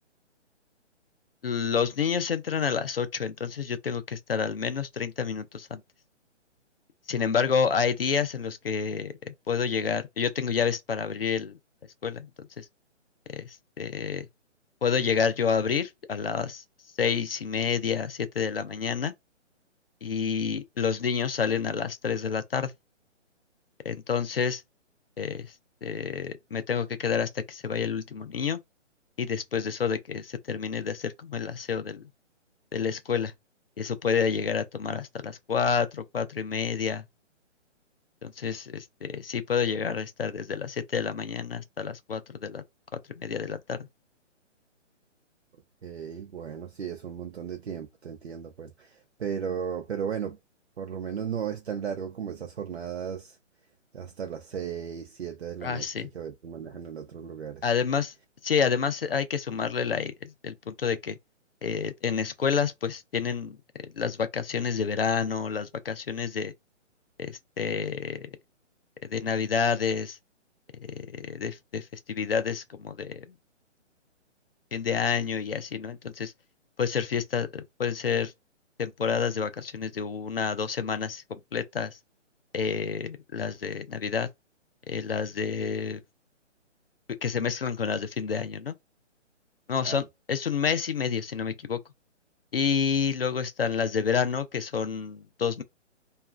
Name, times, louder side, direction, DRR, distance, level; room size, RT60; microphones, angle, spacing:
voice 1, 1.4-5.8 7.1-11.6 12.0-12.3 12.6-12.7 13.3-14.3 14.8-16.6 17.0-19.1 20.0-22.7 23.8-24.6 25.2-25.5 25.8-28.6 29.2-32.0 32.7-33.3 33.8-37.1 38.2-42.6 43.2-43.8 55.6-56.1 57.6-58.1 58.4-61.2 61.6-63.6 64.0-66.5 67.2-68.3 69.1-70.2 71.1-73.2 74.7-76.3 76.8-78.3 78.8-82.0 82.5-84.3 84.9-86.0 87.2-88.7 89.7-90.0 90.3-91.8 92.5-95.6, left 6 dB, 50° left, 0.5 m, -29 dB
voice 2, 45.8-50.4 50.8-53.4 53.9-57.6 89.8-90.0, right 7 dB, 60° right, 0.5 m, -35 dB
2.8 x 2.4 x 2.4 m
hypercardioid pair, 180°, 37 cm